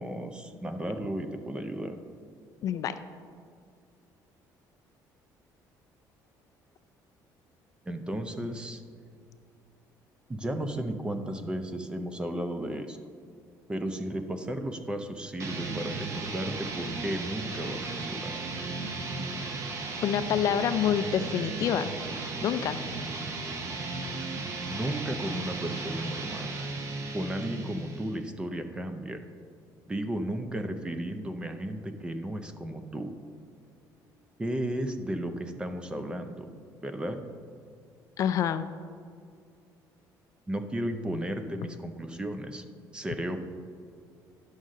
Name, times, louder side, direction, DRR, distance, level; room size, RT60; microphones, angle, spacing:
voice 1, 0.0-2.0 7.9-8.8 10.3-13.0 13.7-18.5 24.7-26.5 27.1-29.2 29.9-33.1 34.4-36.5 36.8-37.2 40.5-42.6 42.9-43.4, right 1 dB, 10° right, 7 dB, 0.5 m, -34 dB
voice 2, 2.6-2.9 20.0-21.9 22.4-22.8 38.2-38.6, left 9 dB, 50° left, 11 dB, 0.3 m, -27 dB
sound 1, 15.4-28.2, right 3 dB, 40° right, 0.9 m, -35 dB
11.0 x 6.4 x 3.7 m, 2.3 s
cardioid pair, 155°, 7 cm